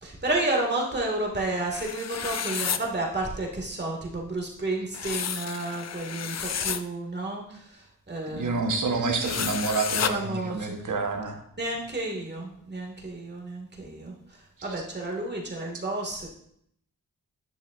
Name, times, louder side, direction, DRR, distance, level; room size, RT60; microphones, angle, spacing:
voice 1, 0.0-7.6 8.1-8.7 10.1-10.7 11.6-14.1 14.6-16.3, right 2 dB, 30° right, -1 dB, 2.3 m, -31 dB
sound 1, 1.7-2.8 4.9-6.8 9.2-10.1, left 8 dB, 55° left, 0.5 m, -31 dB
voice 2, 8.3-11.4 14.6-14.8, right 3 dB, 65° right, 4 dB, 1.3 m, -28 dB
10.0 x 6.9 x 2.6 m, 0.69 s
cardioid pair, 70°, 33 cm